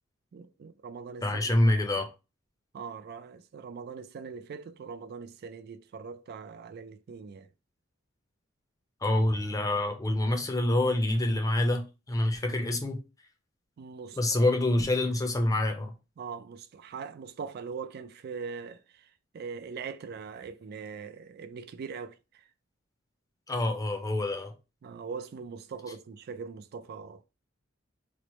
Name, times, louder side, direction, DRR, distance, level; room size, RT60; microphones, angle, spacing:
voice 1, 0.3-1.7 2.7-7.5 13.8-14.4 16.2-19.1 19.3-22.2 24.8-27.2, right 5 dB, 50° right, 0.3 m, -41 dB
voice 2, 1.2-2.1 9.0-13.0 14.2-15.9 23.5-24.5, left 1 dB, 15° left, 0.6 m, -26 dB
3.1 x 2.0 x 4.1 m
head